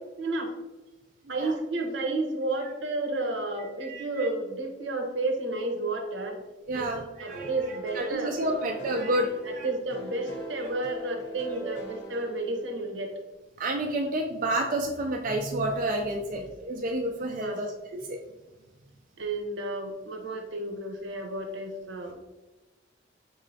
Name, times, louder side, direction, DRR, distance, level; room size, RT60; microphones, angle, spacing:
voice 1, 0.2-0.5 1.3-6.4 6.7-6.9 7.2-8.4 9.4-13.1 16.3-16.4 17.4-17.6 19.2-22.2, right 2 dB, 75° right, 3 dB, 0.8 m, -31 dB
voice 2, 3.8-4.3 6.7-7.5 7.9-9.7 11.6-11.8 13.6-17.7 18.1-18.2, right 1 dB, 45° right, 1 dB, 0.3 m, -29 dB
sound 1, 7.3-13.2, right 3 dB, 80° left, 0.9 m, -41 dB
5.4 x 3.2 x 2.6 m, 1.1 s
head